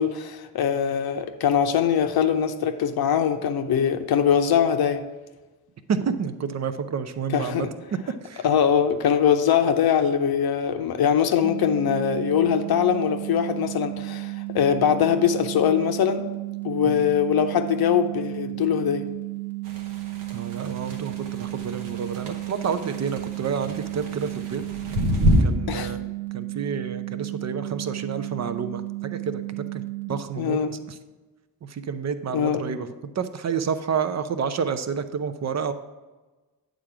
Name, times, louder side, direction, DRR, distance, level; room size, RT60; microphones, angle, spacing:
voice 1, 0.0-5.0 7.3-7.7 8.4-16.2 16.6-19.1 25.7-25.9 30.4-30.7 32.3-32.6, left 8 dB, 50° left, 7 dB, 0.7 m, -22 dB
voice 2, 5.9-8.5 16.9-17.1 20.3-24.6 25.4-29.8 30.1-30.6 31.6-35.7, right 6 dB, 35° right, 11 dB, 0.6 m, -29 dB
sound 1, 11.4-30.1, right 21 dB, 5° left, 0.7 m, -33 dB
sound 2, 19.7-25.4, equal, 75° right, 1.2 m, -27 dB
8.7 x 3.8 x 5.9 m, 1.2 s
hypercardioid pair, 45°, 49 cm